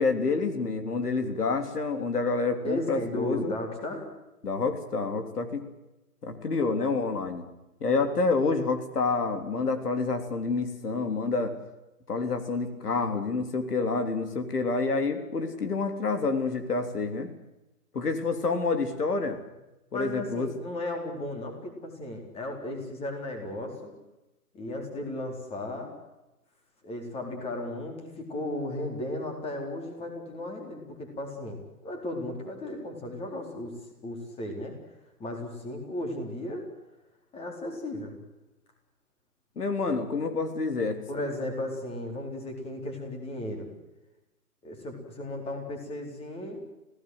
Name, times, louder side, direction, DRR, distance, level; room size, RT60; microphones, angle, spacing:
voice 1, 0.0-3.5 4.4-5.6 6.2-7.5 7.8-11.5 12.1-17.3 17.9-19.4 19.9-20.5 39.6-41.0, left 4 dB, 80° left, 8 dB, 3.6 m, -28 dB
voice 2, 2.6-4.1 19.9-24.0 24.5-25.9 26.8-33.7 34.0-34.8 35.2-36.7 37.3-38.2 41.1-43.7 44.6-46.6, left 1 dB, 15° left, 3 dB, 4.3 m, -35 dB
26.5 x 17.5 x 8.0 m, 0.98 s
hypercardioid pair, 145°, 46 cm